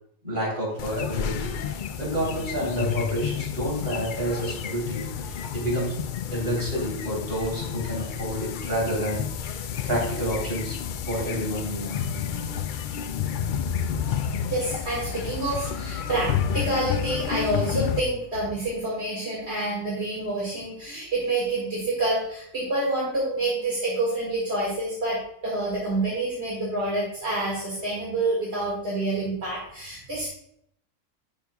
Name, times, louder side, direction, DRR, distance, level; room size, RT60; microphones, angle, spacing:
voice 1, 0.2-1.5 2.0-6.0 6.3-9.6 9.9-10.8 11.1-12.0 13.6-14.0, right 1 dB, 35° right, -4 dB, 3.6 m, -29 dB
sound 1, 0.8-18.0, left 8 dB, 80° left, 0.4 m, -30 dB
voice 2, 14.5-30.3, right 2 dB, 55° right, -6 dB, 2.3 m, -28 dB
11.5 x 5.8 x 2.3 m, 0.72 s
omnidirectional pair, 1.4 m